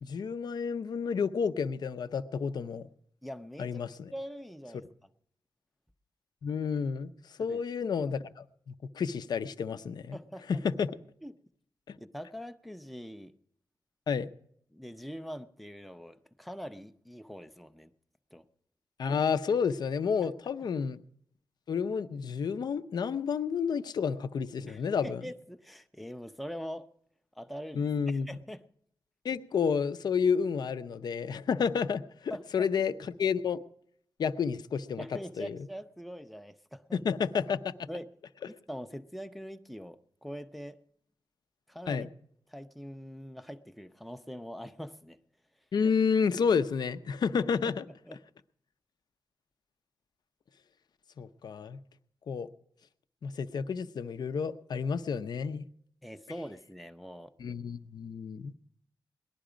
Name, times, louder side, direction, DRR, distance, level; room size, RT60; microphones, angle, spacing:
voice 1, 0.0-2.9 3.6-4.1 6.4-7.1 7.4-10.2 10.5-10.9 11.9-12.0 14.1-14.3 19.0-21.0 21.7-25.2 27.7-28.3 29.2-32.9 33.2-33.6 34.2-35.0 35.4-35.6 36.9-37.9 41.9-42.1 45.7-47.8 51.2-51.8 52.3-52.5 53.2-55.6 57.4-58.5, left 6 dB, 65° left, 12 dB, 0.6 m, -30 dB
voice 2, 3.2-4.9 7.4-7.6 10.1-10.6 11.2-11.4 12.0-13.3 14.7-17.9 18.3-18.4 24.7-26.9 27.3-28.6 32.3-32.7 35.0-37.0 37.9-38.1 38.5-40.8 41.7-42.1 42.5-45.2 47.9-48.2 56.0-57.3, equal, ahead, 9 dB, 0.5 m, -43 dB
18.5 x 11.5 x 5.0 m, 0.68 s
wide cardioid pair, 175°, 8 cm